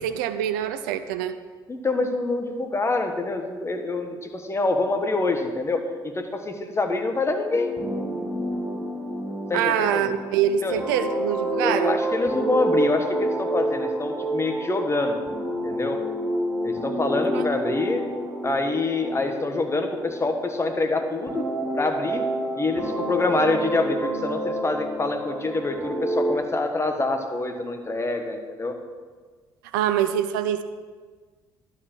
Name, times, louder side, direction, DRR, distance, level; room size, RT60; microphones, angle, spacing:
voice 1, 0.0-1.4 9.5-12.0 17.3-17.4 29.7-30.6, right 10 dB, 80° right, 11 dB, 0.5 m, -24 dB
voice 2, 1.7-7.7 9.5-10.1 10.6-10.8 11.6-15.2 15.6-16.0 16.6-18.1 18.4-21.5 21.7-22.2 22.6-28.8, left 3 dB, 25° left, 5 dB, 1.5 m, -26 dB
sound 1, 7.5-20.8 21.3-26.4, right 1 dB, 30° right, 3.7 m, -29 dB
11.5 x 4.7 x 7.4 m, 1.5 s
hypercardioid pair, 55°, 11 cm